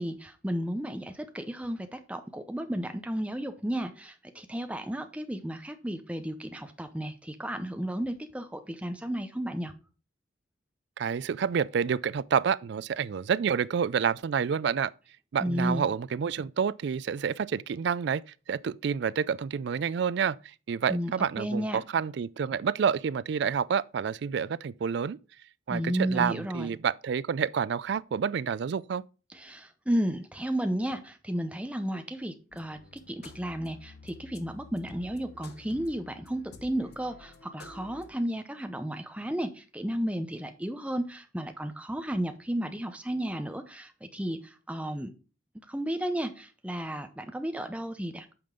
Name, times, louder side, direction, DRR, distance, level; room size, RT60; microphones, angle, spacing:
voice 1, 0.0-9.7 15.4-15.9 20.9-21.8 25.7-26.7 29.3-45.1 45.7-48.3, equal, 5° right, 0.7 m, -33 dB
voice 2, 11.0-14.9 15.3-18.2 18.5-25.2 25.7-29.0, right 7 dB, 55° right, 0.3 m, -28 dB
sound 1, 32.5-38.1, left 3 dB, 50° left, 1.0 m, -50 dB
8.8 x 5.3 x 3.7 m
head